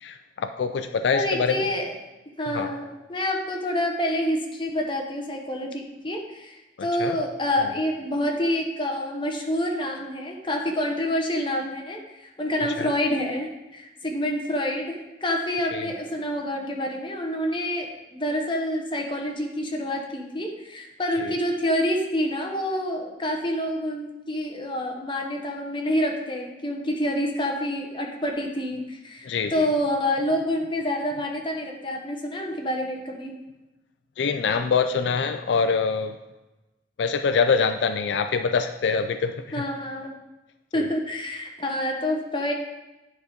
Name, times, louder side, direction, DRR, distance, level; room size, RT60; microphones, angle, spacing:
voice 1, 0.0-1.6 2.5-2.7 7.0-7.2 12.8-12.9 15.7-15.9 21.2-21.3 29.2-29.7 34.2-36.2 37.0-39.3 40.7-40.9, left 5 dB, 80° left, 9 dB, 0.4 m, -24 dB
voice 2, 1.1-2.0 2.4-33.3 39.5-40.1 40.7-42.5, left 1 dB, 30° left, 1 dB, 1.1 m, -27 dB
9.4 x 4.0 x 5.1 m, 1.0 s
head